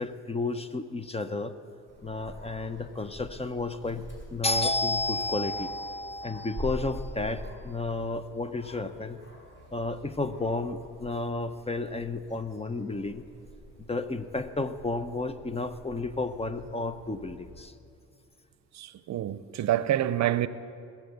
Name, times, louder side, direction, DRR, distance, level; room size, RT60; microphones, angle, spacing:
voice 1, 0.0-1.5 2.0-4.0 4.3-9.2 9.7-13.2 13.9-17.7, left 3 dB, 20° left, 0.7 m, -31 dB
Dog, 1.9-17.6, equal, 40° left, 4.6 m, -46 dB
voice 2, 18.7-20.5, right 12 dB, 65° right, 0.6 m, -27 dB
19.0 x 7.3 x 8.1 m
cardioid pair, 90°, 30 cm